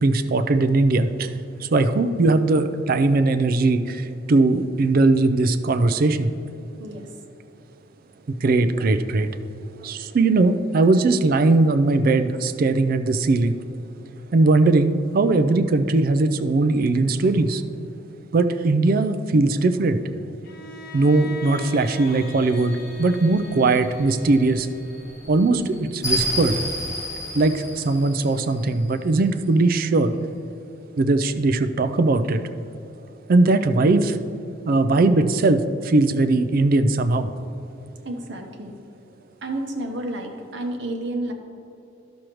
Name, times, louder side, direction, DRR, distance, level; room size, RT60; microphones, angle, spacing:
voice 1, 0.0-1.3 1.6-6.3 8.4-9.3 9.8-13.6 14.3-17.6 18.3-20.0 20.9-24.7 25.3-26.6 27.3-30.1 31.0-32.4 33.3-34.2 34.7-37.3, right 2 dB, 50° right, 10 dB, 0.4 m, -19 dB
voice 2, 6.8-7.2 20.6-20.7 38.0-38.7 39.4-41.3, right 1 dB, 65° right, 3 dB, 0.9 m, -31 dB
Bowed string instrument, 20.4-25.5, left 1 dB, 55° left, 0.6 m, -41 dB
sound 1, 21.4-28.9, equal, 15° left, 2.0 m, -33 dB
11.5 x 6.3 x 3.0 m, 2.8 s
head